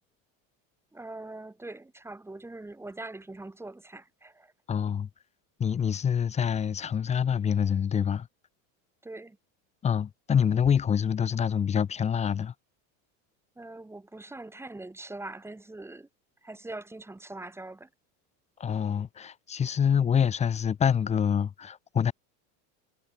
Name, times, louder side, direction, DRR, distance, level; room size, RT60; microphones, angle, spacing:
voice 1, 0.9-4.5 9.0-9.4 13.6-16.1 16.4-17.9, right 2 dB, 5° right, 7.0 m, -42 dB
voice 2, 4.7-5.1 5.6-8.3 9.8-12.5 18.6-22.1, left 8 dB, 15° left, 0.8 m, -26 dB
supercardioid pair, 150°, 40 cm